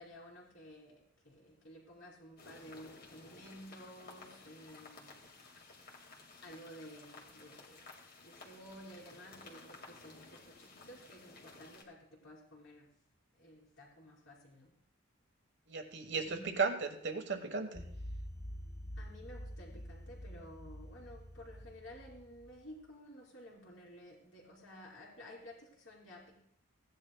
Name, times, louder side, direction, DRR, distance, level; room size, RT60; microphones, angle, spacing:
voice 1, 0.0-5.2 6.4-7.9 8.2-12.9 13.3-14.7 16.1-16.6 19.0-26.4, equal, 65° left, -8 dB, 2.8 m, -53 dB
sound 1, 2.4-11.8, left 3 dB, 45° left, 1.9 m, -55 dB
voice 2, 15.7-17.8, right 4 dB, 55° right, 6 dB, 1.2 m, -35 dB
sound 2, 17.7-22.6, equal, 15° left, 0.5 m, -47 dB
16.5 x 10.5 x 2.3 m, 0.69 s
head